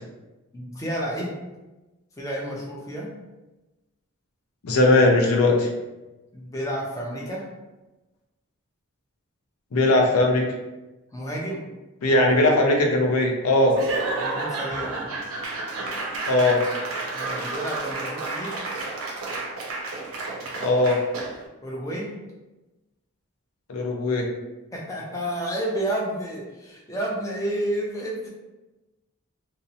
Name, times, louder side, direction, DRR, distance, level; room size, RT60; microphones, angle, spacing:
voice 1, 0.5-1.4 2.2-3.1 6.3-7.5 11.1-11.6 14.2-15.0 17.1-18.6 21.6-22.2 24.7-28.3, right 1 dB, 15° left, -3 dB, 0.4 m, -30 dB
voice 2, 4.6-5.7 9.7-10.4 12.0-13.8 16.3-16.6 20.6-21.0 23.7-24.3, left 2 dB, 80° left, 1 dB, 0.5 m, -19 dB
Laughter / Applause / Crowd, 13.7-21.5, right 3 dB, 70° right, 0.5 m, -31 dB
2.7 x 2.0 x 2.6 m, 1.1 s
head